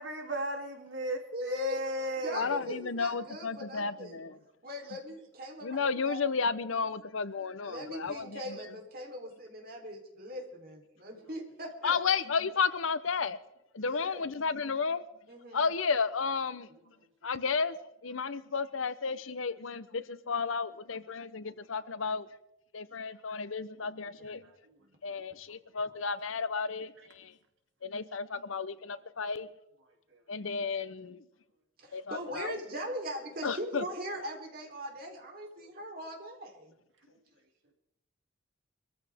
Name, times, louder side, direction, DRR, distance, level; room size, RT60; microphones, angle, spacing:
voice 1, 0.0-2.6 24.4-24.5 25.1-25.2, right 1 dB, 70° right, 3.0 m, -35 dB
voice 2, 1.3-1.8 2.2-4.2 4.6-6.2 7.6-12.0 13.8-14.3 15.3-15.7 24.8-25.0 31.8-36.7, equal, 50° right, 3.6 m, -40 dB
voice 3, 2.3-4.4 5.6-8.6 11.8-13.4 13.7-15.0 15.5-16.7 17.2-22.3 22.7-24.4 25.0-27.3 27.8-29.5 30.3-31.3 31.9-32.5 33.4-33.8, left 5 dB, 85° left, 0.8 m, -33 dB
24.5 x 14.5 x 3.6 m
head